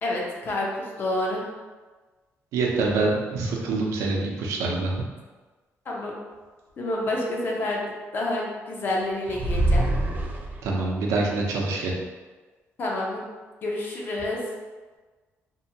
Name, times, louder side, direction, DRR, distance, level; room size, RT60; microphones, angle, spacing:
voice 1, 0.0-1.5 5.9-6.1 6.8-9.8 12.8-13.2 13.6-14.4, left 1 dB, 45° left, -2 dB, 0.6 m, -28 dB
voice 2, 2.5-4.9 10.6-11.9, right 3 dB, 85° right, -1 dB, 0.5 m, -25 dB
sound 1, 9.3-10.9, right 1 dB, 35° right, 0.3 m, -24 dB
2.7 x 2.2 x 2.7 m, 1.3 s
cardioid pair, 135°, 5 cm